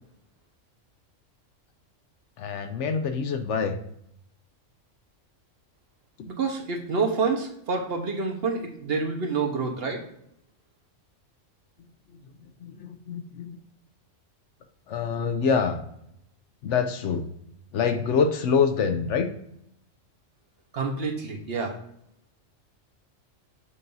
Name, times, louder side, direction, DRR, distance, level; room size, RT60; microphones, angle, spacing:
voice 1, 2.4-3.8 12.6-13.6 14.9-15.8 16.6-17.3 17.7-19.3, left 6 dB, 70° left, 7 dB, 0.9 m, -25 dB
voice 2, 6.3-10.0 20.7-21.7, right 4 dB, 55° right, 2 dB, 1.1 m, -28 dB
6.9 x 2.6 x 5.3 m, 0.74 s
omnidirectional pair, 1.3 m